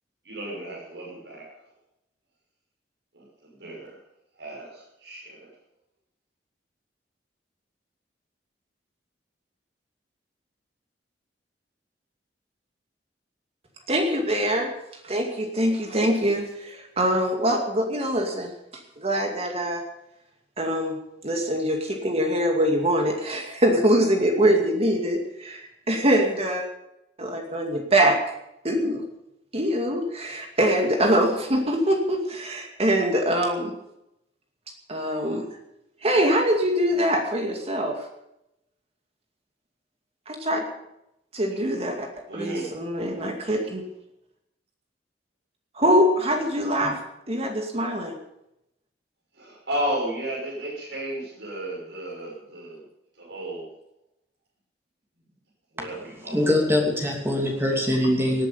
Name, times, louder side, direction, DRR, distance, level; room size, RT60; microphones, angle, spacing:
voice 1, 0.2-1.5 3.1-4.0 4.4-5.5 41.6-41.8 42.3-43.1 49.3-52.8 53.2-53.7 55.7-56.5 57.7-57.8, right 1 dB, 75° right, -5 dB, 6.3 m, -34 dB
voice 2, 13.9-14.7 15.0-18.5 19.0-19.8 20.6-21.0 21.2-26.6 27.2-28.2 28.6-29.0 29.5-33.7 34.9-35.4 36.0-38.0 40.3-40.6 41.3-42.1 42.3-43.8 45.8-46.9 47.3-48.1, equal, 35° right, 3 dB, 2.4 m, -23 dB
voice 3, 56.3-58.5, left 1 dB, 15° right, 0 dB, 2.9 m, -23 dB
18.5 x 9.9 x 7.0 m, 0.83 s
head